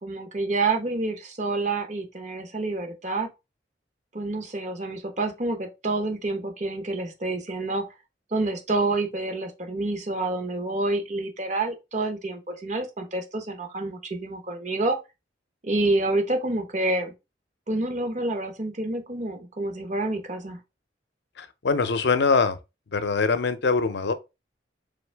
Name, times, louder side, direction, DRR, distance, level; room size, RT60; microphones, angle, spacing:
voice 1, 0.0-3.3 4.1-7.8 8.3-15.0 15.6-17.1 17.7-20.6, right 2 dB, 40° right, 1.0 m, -28 dB
voice 2, 21.4-22.6 22.9-24.1, left 4 dB, 65° left, 0.6 m, -23 dB
3.8 x 3.6 x 3.3 m
head